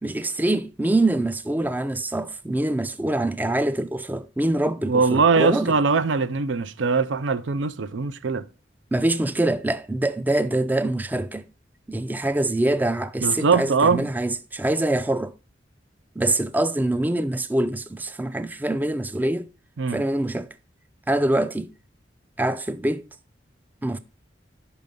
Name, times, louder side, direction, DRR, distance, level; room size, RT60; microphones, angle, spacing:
voice 1, 0.0-5.7 8.9-11.4 11.9-15.3 16.2-19.5 19.9-20.5 21.1-21.7 22.4-23.0 23.8-24.0, right 1 dB, 10° right, 0.3 m, -24 dB
voice 2, 4.9-8.5 13.2-14.1 19.8-20.0, right 4 dB, 85° right, 0.5 m, -21 dB
5.7 x 5.2 x 5.2 m
head